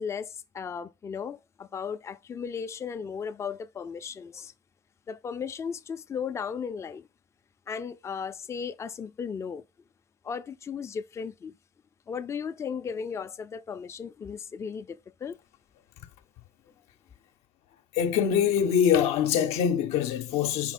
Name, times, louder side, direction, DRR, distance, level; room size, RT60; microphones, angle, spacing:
voice 1, 0.0-4.5 5.1-7.1 7.7-9.6 10.2-11.5 12.1-15.4, left 6 dB, 25° left, 0.4 m, -36 dB
voice 2, 17.9-20.7, left 8 dB, 70° left, 0.6 m, -24 dB
5.0 x 3.6 x 5.3 m
supercardioid pair, 100°, 11 cm